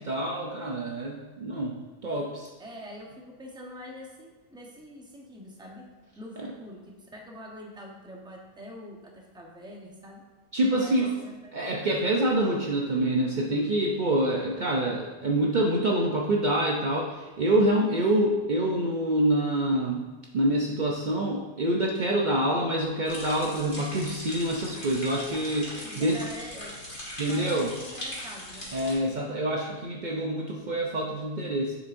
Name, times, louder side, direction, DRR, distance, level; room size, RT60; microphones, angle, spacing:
voice 1, 0.0-1.7 2.0-2.5 6.4-6.5 10.5-11.1 11.5-20.1 20.3-26.2 27.2-27.7 28.7-31.8, right 1 dB, 90° right, -2 dB, 0.4 m, -26 dB
voice 2, 2.6-5.8 6.1-10.2 10.7-11.3 11.7-11.9 17.8-18.0 25.7-26.7 27.2-28.7, equal, 5° right, -1 dB, 0.5 m, -44 dB
sound 1, 23.1-28.9, left 1 dB, 35° left, 1.7 m, -40 dB
7.1 x 7.0 x 2.6 m, 1.2 s
omnidirectional pair, 1.7 m